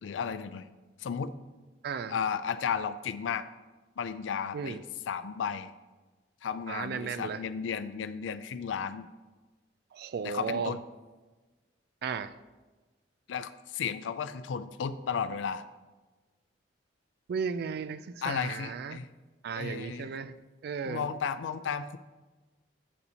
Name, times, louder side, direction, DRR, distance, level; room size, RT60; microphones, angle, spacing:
voice 1, 0.0-0.7 1.0-1.3 2.1-3.5 4.0-4.8 5.1-5.7 6.4-9.1 10.2-10.8 13.3-15.6 18.2-19.1 19.5-20.1 20.8-22.0, left 6 dB, 80° left, 0.4 m, -34 dB
voice 2, 1.8-2.1 4.5-4.8 6.7-7.4 9.9-10.7 12.0-12.3 17.3-19.0 19.4-20.3 20.6-21.0, right 6 dB, 55° right, 0.3 m, -35 dB
8.4 x 6.7 x 2.8 m
head